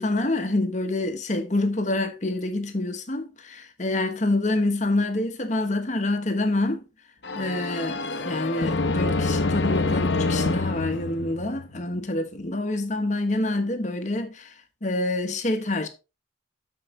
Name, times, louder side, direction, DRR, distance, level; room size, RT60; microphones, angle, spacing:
voice 1, 0.0-6.8 7.3-14.5 14.8-15.9, left 2 dB, 40° left, 1.1 m, -27 dB
sound 1, 7.2-12.0, left 3 dB, 70° left, 0.8 m, -26 dB
13.0 x 4.7 x 3.2 m
head